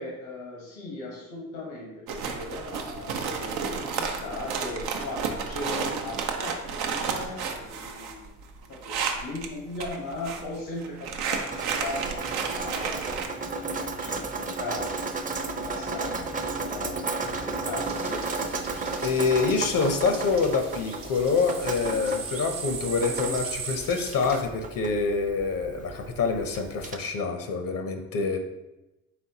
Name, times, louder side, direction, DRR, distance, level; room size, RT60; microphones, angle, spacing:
voice 1, 0.0-12.1 12.5-16.1 16.4-17.0 17.3-19.1, left 2 dB, 85° left, -3 dB, 1.0 m, -38 dB
sound 1, 2.1-9.5 9.8-10.5 10.8-13.3, right 5 dB, 85° right, 0.5 m, -32 dB
Drip, 11.5-27.0, right 3 dB, 25° right, 0.5 m, -34 dB
sound 2, 17.8-24.4, right 5 dB, 65° right, 0.8 m, -39 dB
voice 2, 19.0-28.4, left 4 dB, 60° left, 5 dB, 0.6 m, -26 dB
4.2 x 3.6 x 2.8 m, 0.98 s
supercardioid pair, 50°, 37 cm